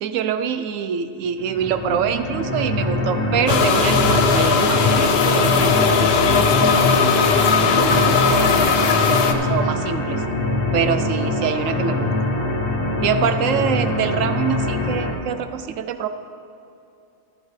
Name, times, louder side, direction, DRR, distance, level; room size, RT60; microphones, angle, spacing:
voice 1, 0.0-7.0 7.8-10.2 10.7-12.1 13.0-16.1, right 8 dB, 70° right, 10 dB, 0.9 m, -25 dB
sound 1, 1.4-15.1, left 2 dB, 40° left, 1.6 m, -23 dB
sound 2, 3.5-9.3, left 6 dB, 55° left, 0.8 m, -18 dB
12.0 x 11.5 x 3.2 m, 2.7 s
omnidirectional pair, 1.5 m